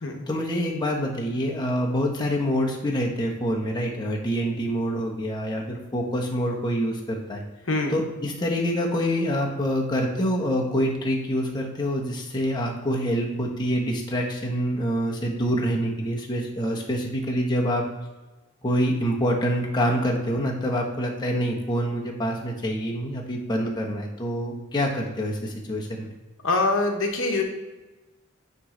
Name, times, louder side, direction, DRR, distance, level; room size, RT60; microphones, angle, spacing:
voice 1, 0.3-7.4 7.9-17.8 18.6-26.1, equal, 20° left, -1 dB, 0.9 m, -26 dB
voice 2, 26.4-27.4, left 2 dB, 60° left, 2 dB, 1.1 m, -24 dB
9.1 x 3.2 x 3.8 m, 1.1 s
head